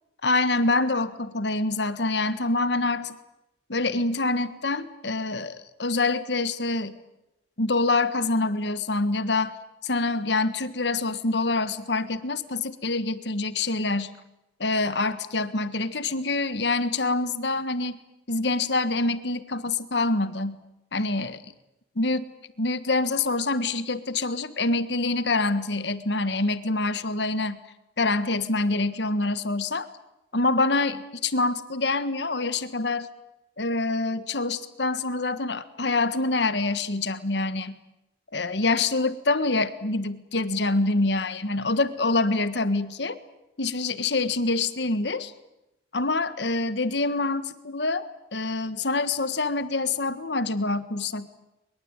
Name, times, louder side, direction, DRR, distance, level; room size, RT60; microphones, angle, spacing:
voice 1, 0.2-3.1 3.7-7.0 7.6-9.5 9.8-14.2 14.6-18.0 18.3-20.6 20.9-21.4 22.0-22.3 22.6-27.6 28.0-29.9 30.3-33.1 33.6-37.8 38.3-43.2 43.6-45.3 45.9-51.3, left 3 dB, 70° left, 13 dB, 1.6 m, -26 dB
22.5 x 22.5 x 8.9 m, 0.92 s
head